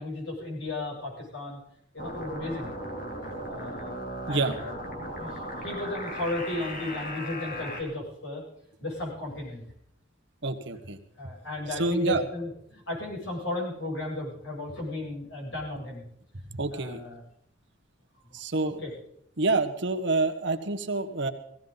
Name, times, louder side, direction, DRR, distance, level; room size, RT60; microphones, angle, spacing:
voice 1, 0.0-1.6 1.9-2.7 3.4-4.0 4.3-4.7 5.0-8.4 8.8-9.6 11.2-16.0 16.7-17.2 18.3-18.9, left 2 dB, 70° left, -3 dB, 7.5 m, -35 dB
sound 1, 2.0-7.8, equal, 45° left, 3.1 m, -37 dB
voice 2, 10.4-11.0 11.8-12.2 16.5-17.0 18.3-18.8 19.4-21.3, right 3 dB, 60° right, 7 dB, 1.3 m, -27 dB
17.0 x 17.0 x 4.0 m, 0.73 s
head